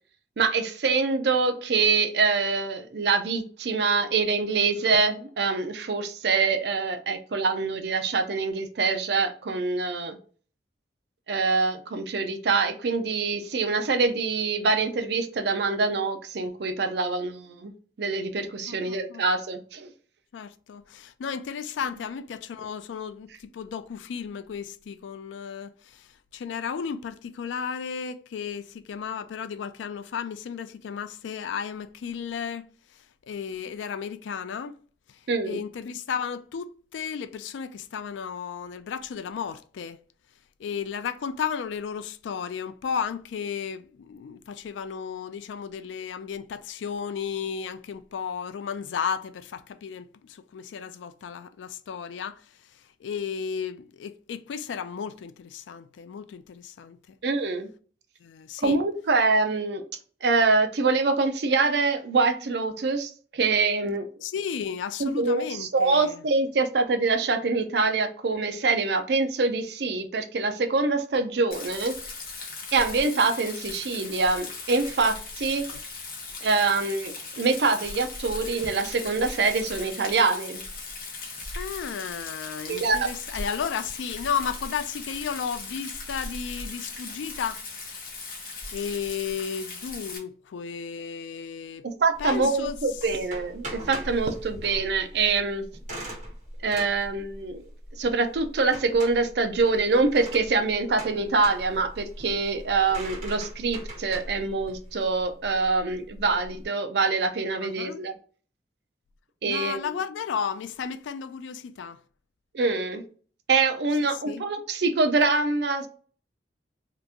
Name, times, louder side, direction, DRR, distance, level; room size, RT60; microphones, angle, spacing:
voice 1, 0.4-10.2 11.3-17.7 18.0-19.9 35.3-35.6 57.2-57.7 58.6-59.8 60.2-64.1 65.0-71.9 72.7-75.7 76.4-80.6 82.7-83.1 92.0-95.6 96.6-97.6 98.0-108.1 109.4-109.9 112.5-113.0 113.5-115.9, right 4 dB, 65° right, 0.5 m, -25 dB
voice 2, 18.7-19.2 20.3-32.7 33.3-34.7 35.1-40.0 40.6-52.4 53.0-57.2 58.2-58.8 64.2-66.2 75.7-75.8 81.6-88.0 88.7-91.9 92.2-92.8 107.6-108.1 109.4-112.0 114.0-114.4, left 7 dB, 85° left, 0.3 m, -34 dB
Rain, 71.5-90.2, left 3 dB, 50° left, 0.8 m, -38 dB
sound 1, 92.1-106.6, right 1 dB, 40° right, 1.3 m, -40 dB
2.9 x 2.5 x 3.4 m
head